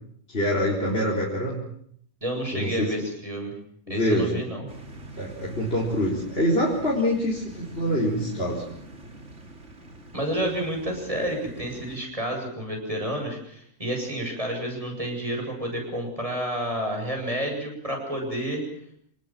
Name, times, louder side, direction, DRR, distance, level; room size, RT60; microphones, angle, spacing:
voice 1, 0.3-1.6 2.5-2.9 3.9-4.4 5.2-8.6, equal, 40° left, -4 dB, 4.6 m, -25 dB
voice 2, 2.2-3.5 3.9-4.7 10.1-18.6, right 1 dB, 20° right, 2 dB, 8.0 m, -30 dB
sound 1, 4.7-12.0, right 2 dB, 50° right, 3.2 m, -44 dB
28.0 x 19.5 x 7.6 m, 0.65 s
omnidirectional pair, 1.6 m